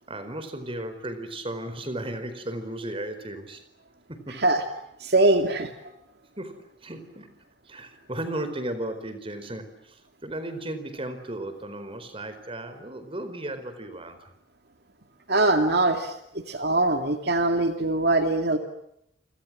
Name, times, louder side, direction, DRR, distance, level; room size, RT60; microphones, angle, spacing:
voice 1, 0.1-3.6 4.1-4.4 6.4-7.3 7.7-14.3, right 1 dB, 30° right, 10 dB, 4.5 m, -35 dB
voice 2, 5.0-5.7 15.3-16.2 16.5-18.6, right 2 dB, 60° right, 6 dB, 2.4 m, -22 dB
29.5 x 26.5 x 7.6 m, 0.77 s
head